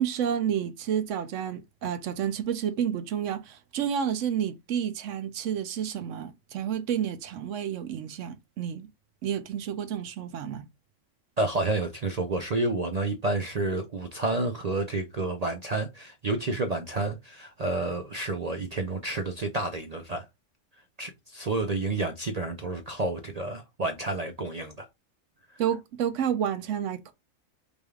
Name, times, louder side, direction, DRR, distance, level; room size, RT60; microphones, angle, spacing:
voice 1, 0.0-8.9 9.2-10.7 25.6-27.1, right 9 dB, 70° right, 1.0 m, -30 dB
voice 2, 11.4-20.3 21.0-24.9 25.5-25.6, right 2 dB, 55° right, 0.4 m, -30 dB
5.2 x 3.3 x 2.3 m
omnidirectional pair, 1.4 m